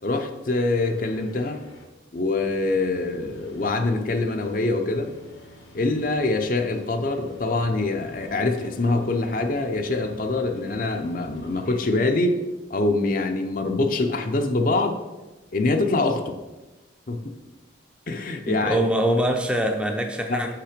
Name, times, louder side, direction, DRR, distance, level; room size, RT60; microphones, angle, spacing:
voice 1, 0.0-1.6 2.1-5.1 5.7-12.4 12.7-15.0 15.5-16.3 17.1-17.2 18.1-18.8 20.3-20.5, left 2 dB, 45° left, 4 dB, 0.7 m, -24 dB
sound 1, 0.5-1.8 2.4-11.7, equal, 90° left, 1.6 m, -48 dB
voice 2, 18.5-20.5, right 1 dB, 5° right, 3 dB, 0.6 m, -23 dB
6.7 x 5.8 x 5.1 m, 1.1 s
head